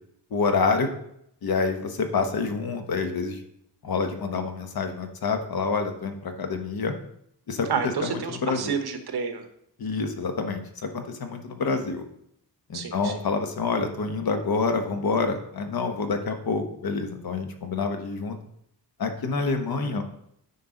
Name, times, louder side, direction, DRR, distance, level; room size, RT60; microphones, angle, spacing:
voice 1, 0.3-0.9 1.4-3.4 3.8-6.9 7.5-7.7 8.0-8.7 9.8-12.0 12.7-18.4 19.0-20.0, left 4 dB, 55° left, 6 dB, 1.1 m, -27 dB
voice 2, 7.7-9.5 12.7-13.1, right 6 dB, 65° right, 6 dB, 1.2 m, -29 dB
9.6 x 5.8 x 3.8 m, 0.73 s
wide cardioid pair, 125°, 42 cm